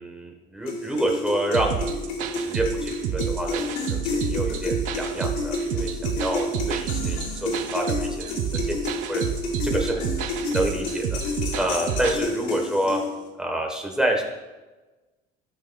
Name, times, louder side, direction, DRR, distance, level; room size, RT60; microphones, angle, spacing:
voice 1, 0.0-2.1 2.4-8.8 9.1-9.3 9.6-10.1 10.5-11.2 11.6-13.0 13.4-14.2, right 1 dB, 5° right, 1 dB, 1.1 m, -28 dB
sound 1, 0.7-13.3, left 3 dB, 75° left, 2.8 m, -30 dB
sound 2, 1.5-12.2, right 8 dB, 55° right, 0.6 m, -30 dB
18.5 x 6.5 x 2.3 m, 1.2 s
cardioid pair, 180°, 16 cm